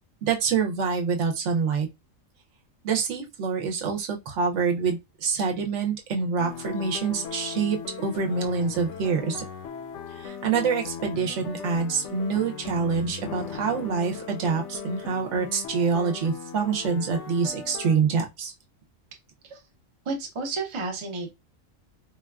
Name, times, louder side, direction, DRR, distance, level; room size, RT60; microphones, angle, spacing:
voice 1, 0.2-1.9 2.8-9.4 10.1-18.5, right 5 dB, 70° right, 0.9 m, -26 dB
sound 1, 6.4-18.0, left 7 dB, 70° left, 0.9 m, -38 dB
voice 2, 20.1-21.3, right 3 dB, 40° right, 0.4 m, -31 dB
3.7 x 2.3 x 2.2 m
omnidirectional pair, 1.4 m